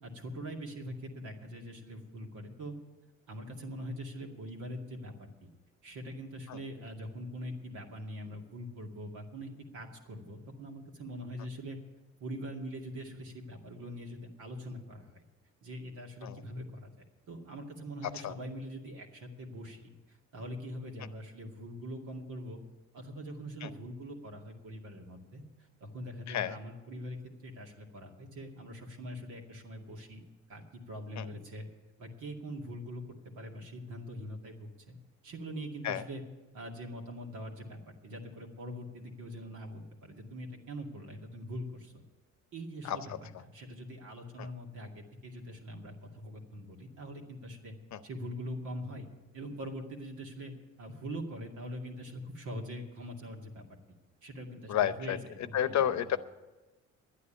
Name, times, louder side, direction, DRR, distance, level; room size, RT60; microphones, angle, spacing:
voice 1, 0.0-2.7 3.3-5.5 5.8-11.8 12.2-15.2 15.6-19.9 20.3-22.6 22.9-25.4 25.8-30.2 30.5-31.7 32.0-33.0 33.4-35.0 35.2-36.2 36.5-42.0 42.5-43.1 43.4-47.7 48.0-49.1 49.3-50.5 50.8-53.6 54.2-56.1, equal, 80° right, 1 dB, 2.4 m, -43 dB
voice 2, 26.3-26.6 31.2-31.3 35.8-36.0 42.8-43.2 44.4-44.5 47.9-48.0 54.7-56.2, left 10 dB, 65° left, 13 dB, 0.8 m, -32 dB
11.5 x 9.7 x 8.5 m, 1.2 s
cardioid pair, 90°, 30 cm